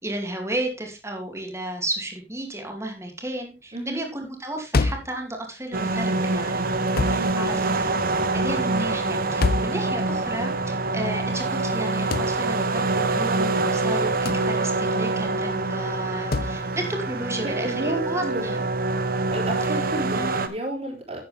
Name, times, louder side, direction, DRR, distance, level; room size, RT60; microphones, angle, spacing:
voice 1, 0.0-6.7 7.1-8.0 8.3-18.6 19.6-19.8 20.1-20.5, right 1 dB, 15° right, 2 dB, 2.8 m, -33 dB
voice 2, 3.7-4.1 7.0-7.9 17.4-18.6 19.3-21.2, right 1 dB, 40° right, -1 dB, 4.1 m, -32 dB
sound 1, 4.7-5.2 7.0-7.3 9.4-9.8 12.1-12.4 14.2-14.5 16.3-16.6, left 3 dB, 60° left, 0.6 m, -24 dB
sound 2, 5.7-20.5, right 3 dB, 55° right, 1.0 m, -25 dB
11.0 x 8.7 x 3.5 m, 0.28 s
head